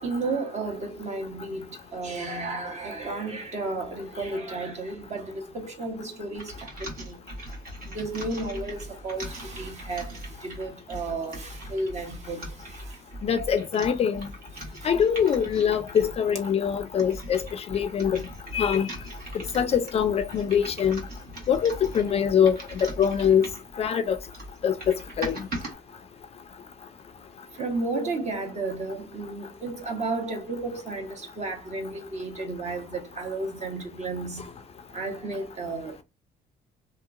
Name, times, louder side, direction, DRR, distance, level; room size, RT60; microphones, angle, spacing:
voice 1, 0.0-6.7 7.0-7.2 7.9-12.9 14.8-14.9 27.5-34.4 34.9-36.0, right 3 dB, 40° right, 1.2 m, -33 dB
sound 1, 6.4-16.2 16.8-23.7 24.1-25.7, right 1 dB, 60° right, 1.4 m, -40 dB
voice 2, 13.2-14.3 14.8-18.2 18.5-18.9 19.5-21.0 21.5-23.5 23.8-24.2 24.6-25.4, left 8 dB, 35° left, 0.4 m, -23 dB
2.8 x 2.7 x 2.4 m
cardioid pair, 110°, 17 cm